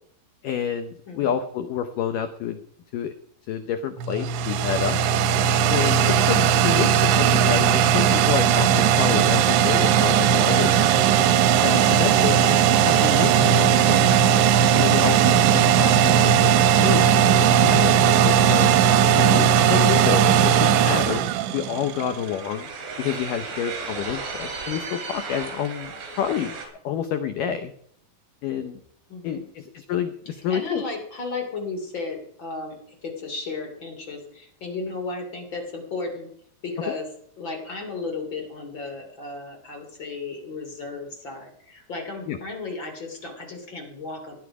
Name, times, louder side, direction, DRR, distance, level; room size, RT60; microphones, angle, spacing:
voice 1, 0.4-2.6 2.9-3.1 3.5-5.0 5.7-11.1 11.6-14.3 14.8-18.7 19.1-21.2 21.5-22.7 23.0-26.6 26.8-27.7 28.4-28.8 29.2-30.8 42.3-42.4, left 9 dB, 85° left, 8 dB, 1.9 m, -29 dB
sound 1, 4.0-22.1, right 8 dB, 90° right, 3.2 m, -18 dB
sound 2, 21.7-26.7, right 4 dB, 75° right, 5.2 m, -35 dB
voice 2, 29.1-29.4 30.5-36.3 36.6-37.1 37.4-44.4, left 3 dB, 30° left, 3 dB, 2.9 m, -34 dB
18.5 x 10.5 x 4.9 m, 0.66 s
omnidirectional pair, 5.1 m